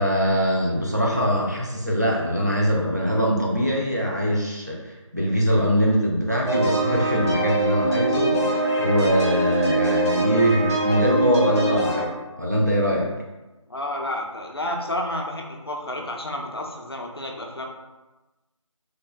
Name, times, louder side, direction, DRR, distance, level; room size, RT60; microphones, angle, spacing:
voice 1, 0.0-12.1 12.4-13.1, equal, 30° right, -3 dB, 0.4 m, -22 dB
sound 1, 6.5-12.0, right 1 dB, 55° right, 1.3 m, -23 dB
voice 2, 13.7-17.7, left 1 dB, 50° left, 1 dB, 0.4 m, -30 dB
3.2 x 2.1 x 2.2 m, 1.1 s
figure-of-eight pair, 170°, 17 cm